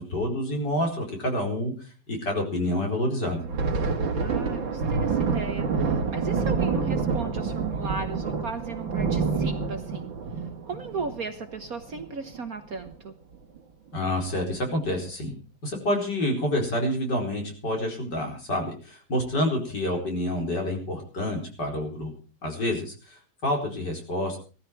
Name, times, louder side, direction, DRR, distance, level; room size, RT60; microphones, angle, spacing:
voice 1, 0.0-1.7 2.1-3.4 13.9-15.3 15.6-22.1 22.4-24.4, left 1 dB, 55° left, 1 dB, 5.2 m, -28 dB
Thunder, 3.3-12.4 12.7-12.9 13.3-13.6 14.2-14.7, right 4 dB, 70° right, 2.6 m, -28 dB
voice 2, 4.1-10.2 10.6-13.2 19.8-20.0, right 4 dB, 50° right, 8 dB, 1.4 m, -36 dB
17.5 x 14.0 x 4.7 m, 0.37 s
omnidirectional pair, 2.2 m